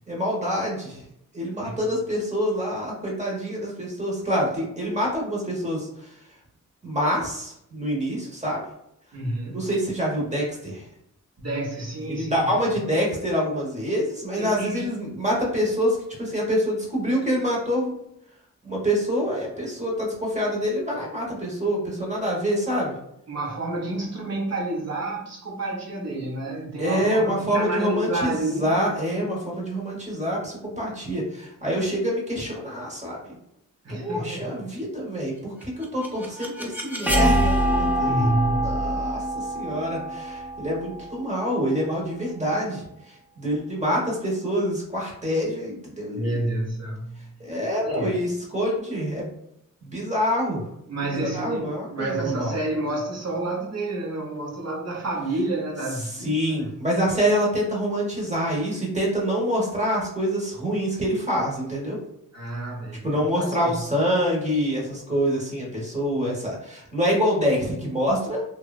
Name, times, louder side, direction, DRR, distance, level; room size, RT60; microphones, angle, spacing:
voice 1, 0.1-1.0 1.3-6.1 6.8-8.6 9.5-10.8 12.1-17.9 18.6-22.9 26.8-33.3 33.9-38.3 38.5-46.4 47.4-49.3 49.8-50.6 51.0-52.5 56.2-62.0 63.0-68.4, equal, 20° right, -3 dB, 1.0 m, -26 dB
voice 2, 9.1-9.7 11.4-12.8 14.4-14.9 23.3-28.8 33.8-34.6 38.0-38.8 46.1-48.2 50.9-56.7 62.3-63.9, right 2 dB, 50° right, -2 dB, 0.8 m, -29 dB
sound 1, 35.6-41.5, right 1 dB, 5° right, 0.5 m, -25 dB
2.9 x 2.2 x 2.3 m, 0.76 s
wide cardioid pair, 85°, 34 cm